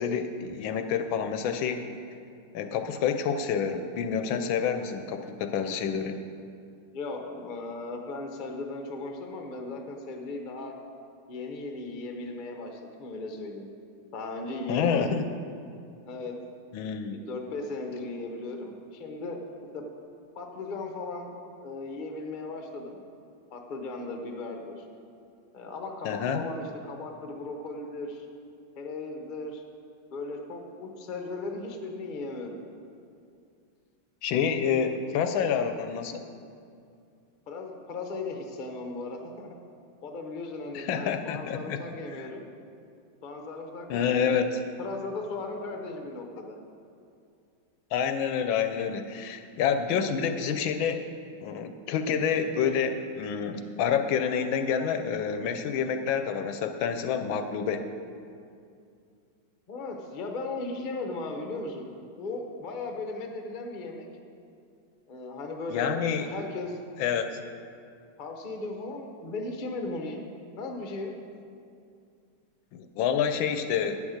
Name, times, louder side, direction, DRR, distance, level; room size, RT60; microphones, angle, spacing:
voice 1, 0.0-1.8 2.5-6.1 14.7-15.2 16.7-17.2 26.0-26.4 34.2-36.2 40.7-41.8 42.1-42.3 43.9-44.6 47.9-51.0 51.4-57.9 65.7-66.3 67.0-67.4 72.7-74.0, left 7 dB, 75° left, 7 dB, 1.3 m, -28 dB
voice 2, 6.9-10.8 11.3-13.7 14.1-15.2 16.1-16.3 17.1-19.4 19.7-19.8 20.3-21.3 21.6-23.0 23.5-24.8 25.5-28.3 28.8-29.6 30.1-32.6 37.5-39.5 40.0-42.5 43.2-44.5 44.8-46.6 59.7-61.9 62.2-64.1 65.1-65.9 66.2-66.8 68.2-70.3 70.6-71.2, left 3 dB, 40° left, 3 dB, 0.6 m, -37 dB
9.3 x 7.2 x 6.4 m, 2.4 s
omnidirectional pair, 2.3 m